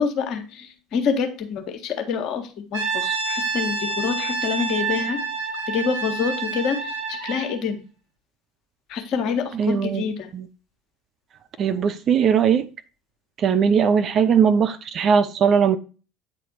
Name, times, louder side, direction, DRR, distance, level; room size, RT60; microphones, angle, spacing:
voice 1, 0.0-5.2 5.7-7.8 8.9-10.3, left 6 dB, 50° left, 1.5 m, -26 dB
Brass instrument, 2.7-7.6, right 4 dB, 70° right, 2.2 m, -28 dB
voice 2, 9.5-10.0 10.3-10.5 11.6-12.7 13.4-15.8, right 7 dB, 40° right, 0.7 m, -19 dB
9.0 x 4.1 x 4.3 m
figure-of-eight pair, 65°, 0 cm